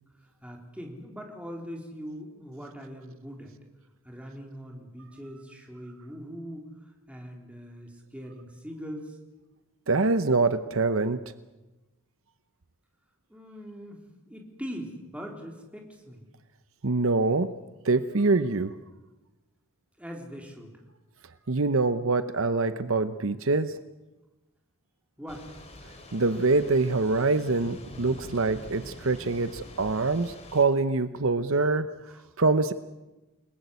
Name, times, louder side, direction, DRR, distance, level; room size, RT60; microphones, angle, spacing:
voice 1, 0.4-3.5 4.0-6.7 7.1-9.2 13.3-16.3 20.0-20.7 25.2-25.4 32.1-32.3, equal, 5° right, 1 dB, 3.9 m, -41 dB
voice 2, 9.9-11.2 16.8-17.5 17.8-18.8 21.5-23.8 26.1-31.9 32.4-32.7, right 3 dB, 60° right, 11 dB, 0.8 m, -25 dB
Thunder / Rain, 25.3-30.6, left 1 dB, 30° left, 4.0 m, -45 dB
29.0 x 20.5 x 8.3 m, 1.1 s
head